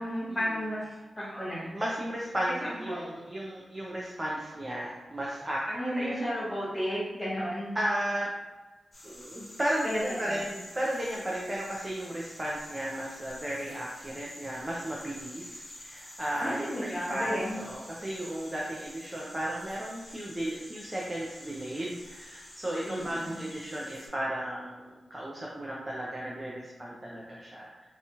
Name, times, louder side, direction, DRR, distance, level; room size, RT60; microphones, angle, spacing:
voice 1, 0.0-1.7 2.6-3.2 5.6-7.7 9.8-10.3 16.4-17.6 22.8-23.3, equal, 15° left, -7 dB, 0.9 m, -33 dB
voice 2, 1.7-6.2 7.7-8.3 9.0-27.8, right 1 dB, 20° right, -4 dB, 0.3 m, -34 dB
sound 1, 8.9-24.1, left 1 dB, 45° left, 0.7 m, -48 dB
2.7 x 2.2 x 2.8 m, 1.2 s
wide cardioid pair, 160°, 0 cm